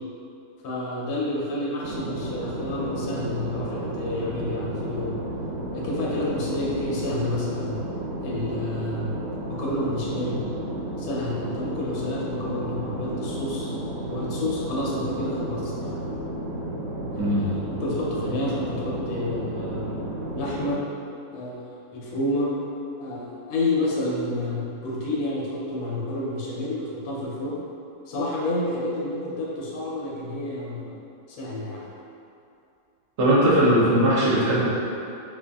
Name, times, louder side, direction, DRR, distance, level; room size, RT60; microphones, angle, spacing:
voice 1, 0.6-5.2 5.7-7.9 8.2-9.1 9.5-10.4 11.0-13.7 14.0-16.0 17.1-20.8 21.3-21.6 21.9-22.5 23.0-27.6 28.1-31.0 31.3-31.9, left 1 dB, 85° left, -5 dB, 1.5 m, -29 dB
sound 1, 1.8-20.7, right 1 dB, 80° right, 1.4 m, -32 dB
voice 2, 17.2-17.5 33.2-34.7, equal, 55° right, -7 dB, 0.8 m, -19 dB
5.1 x 2.5 x 2.2 m, 2.6 s
omnidirectional pair, 2.1 m